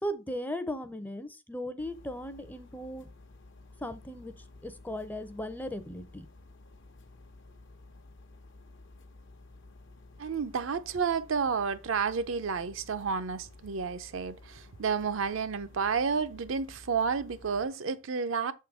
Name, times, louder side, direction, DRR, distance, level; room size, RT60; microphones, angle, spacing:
voice 1, 0.0-3.1 3.8-4.3 4.6-6.3, equal, 10° left, 0.5 m, -37 dB
sound 1, 1.8-17.7, left 2 dB, 65° left, 0.9 m, -53 dB
voice 2, 10.2-18.5, right 5 dB, 70° right, 0.6 m, -31 dB
6.7 x 3.8 x 4.7 m
head